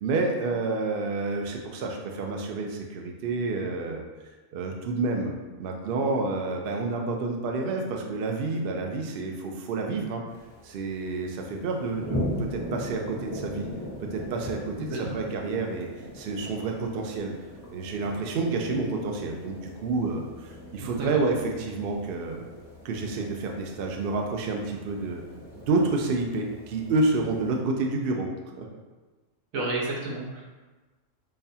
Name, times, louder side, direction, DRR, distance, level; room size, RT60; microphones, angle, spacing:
voice 1, 0.0-4.1 4.5-5.3 5.6-10.2 10.6-13.7 14.1-15.9 16.1-17.3 17.7-22.5 22.8-25.2 25.5-28.3 28.6-28.7, right 3 dB, 65° right, 2 dB, 0.6 m, -29 dB
sound 1, 10.3-27.6, left 1 dB, 5° right, 0.5 m, -40 dB
voice 2, 14.8-15.1 20.8-21.2 29.5-30.4, right 2 dB, 90° right, -3 dB, 1.3 m, -31 dB
5.4 x 2.2 x 2.7 m, 1.2 s
omnidirectional pair, 1.4 m